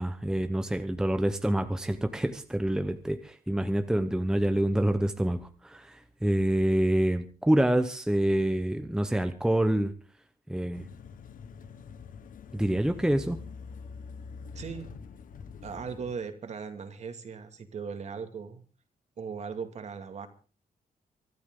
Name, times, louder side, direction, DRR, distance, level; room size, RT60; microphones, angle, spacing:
voice 1, 0.0-9.9 10.5-10.9 12.5-13.4, right 1 dB, 5° right, 8 dB, 0.9 m, -27 dB
sound 1, 10.7-16.1, left 5 dB, 60° left, 1.4 m, -45 dB
voice 2, 14.5-15.0 15.6-18.6 19.2-20.3, right 6 dB, 45° right, 8 dB, 2.3 m, -38 dB
24.5 x 13.5 x 3.8 m, 0.36 s
wide cardioid pair, 175°, 15 cm